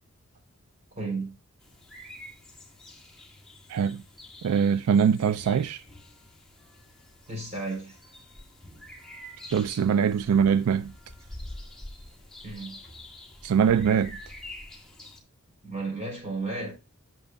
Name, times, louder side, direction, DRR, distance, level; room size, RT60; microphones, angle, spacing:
voice 1, 0.9-1.3 7.3-8.0 12.4-12.8 15.6-16.7, right 3 dB, 30° right, 4.0 m, -33 dB
sound 1, 1.6-15.2, left 1 dB, 5° left, 1.6 m, -46 dB
voice 2, 3.7-4.0 4.4-5.8 9.5-10.9 13.4-14.2, right 7 dB, 80° right, 0.3 m, -23 dB
8.9 x 7.2 x 2.2 m
head